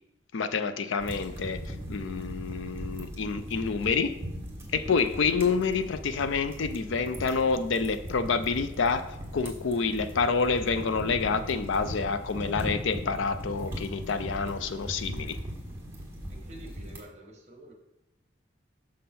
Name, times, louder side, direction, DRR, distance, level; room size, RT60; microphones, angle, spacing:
voice 1, 0.3-4.1 4.7-15.4, left 5 dB, 75° left, 11 dB, 0.5 m, -28 dB
sound 1, 1.0-17.0, equal, 10° right, 1.3 m, -39 dB
voice 2, 16.3-17.7, right 1 dB, 35° right, 2 dB, 1.2 m, -48 dB
6.4 x 5.4 x 4.3 m, 0.87 s
head